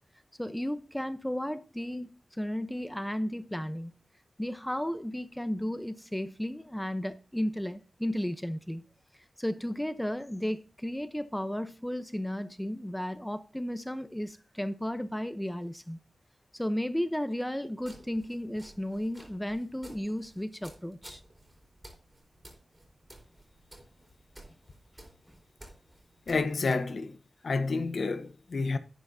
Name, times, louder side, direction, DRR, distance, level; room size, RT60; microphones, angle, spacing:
voice 1, 0.4-2.1 2.4-3.9 4.4-8.8 9.4-16.0 16.5-21.2, equal, 5° left, 0.9 m, -34 dB
sound 1, 17.8-26.8, right 1 dB, 20° right, 3.6 m, -54 dB
voice 2, 26.3-27.2 27.4-28.8, left 4 dB, 70° left, 0.9 m, -29 dB
11.0 x 9.6 x 2.8 m
wide cardioid pair, 90°, 0 cm